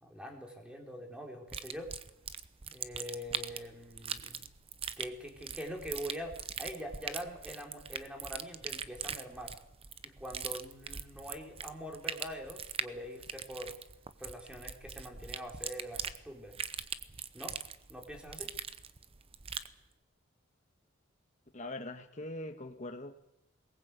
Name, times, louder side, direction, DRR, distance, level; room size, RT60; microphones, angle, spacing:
voice 1, 0.0-1.9 2.7-4.5 5.0-9.6 10.0-13.8 14.2-16.6 17.3-17.6 17.9-18.5, equal, 5° right, 2 dB, 3.9 m, -44 dB
sound 1, 1.5-19.7, right 7 dB, 30° right, 0.8 m, -41 dB
voice 2, 21.5-23.1, left 1 dB, 35° left, 5 dB, 1.5 m, -42 dB
21.5 x 19.0 x 8.2 m, 0.83 s
head